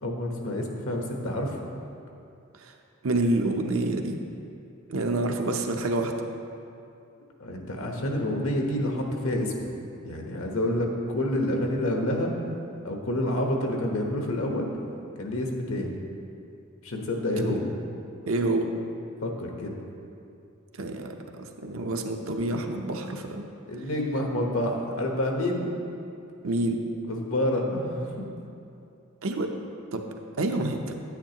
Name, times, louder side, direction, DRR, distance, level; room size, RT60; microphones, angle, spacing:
voice 1, 0.0-1.6 7.4-9.7 10.0-12.3 12.8-14.7 15.2-15.9 16.8-17.7 19.2-19.7 23.7-25.7 27.1-28.3, left 1 dB, 70° left, 1 dB, 1.1 m, -28 dB
voice 2, 3.0-4.2 4.9-6.1 17.4-17.6 18.3-18.7 20.8-23.5 26.4-26.8 29.2-29.5 29.9-30.0 30.4-30.9, right 2 dB, 70° right, 3 dB, 0.7 m, -28 dB
9.7 x 9.3 x 2.9 m, 2.6 s
head